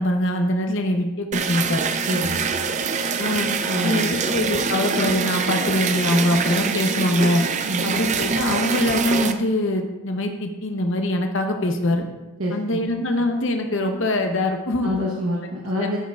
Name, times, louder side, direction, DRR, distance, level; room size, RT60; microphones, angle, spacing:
voice 1, 0.0-1.8 3.2-3.5 3.8-7.4 7.8-12.0 12.5-14.9 15.8-15.9, left 1 dB, 60° left, 4 dB, 0.8 m, -23 dB
sound 1, 1.3-9.3, right 5 dB, 35° right, 0.4 m, -24 dB
voice 2, 2.1-2.4 3.7-4.2 7.6-7.9 12.4-12.9 14.8-16.0, equal, 70° right, -3 dB, 1.0 m, -26 dB
12.5 x 6.3 x 2.4 m, 1.1 s
head